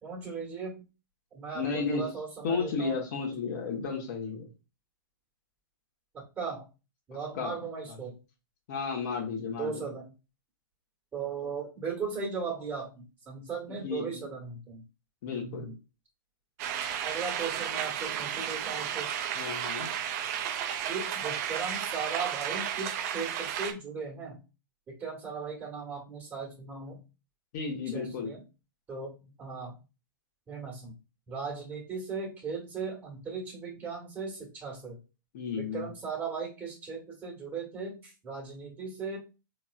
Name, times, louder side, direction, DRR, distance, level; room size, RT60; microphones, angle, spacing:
voice 1, 0.0-0.8 1.3-3.0 6.1-6.7 7.1-8.2 9.6-10.1 11.1-14.8 15.4-15.7 17.0-19.1 20.9-24.4 24.9-27.0 27.9-28.4 28.9-29.7 30.5-30.9 31.3-35.0 35.5-39.2, right 5 dB, 15° right, -3 dB, 1.5 m, -37 dB
voice 2, 1.5-2.1 2.4-4.5 7.4-7.5 7.9-8.0 8.7-9.9 13.7-14.3 15.2-15.7 19.3-19.9 27.5-28.3 35.3-35.9, left 5 dB, 50° left, 0 dB, 1.3 m, -33 dB
sound 1, 16.6-23.7, right 9 dB, 45° right, 0.5 m, -33 dB
3.9 x 3.1 x 2.4 m, 0.30 s
hypercardioid pair, 110°, 12 cm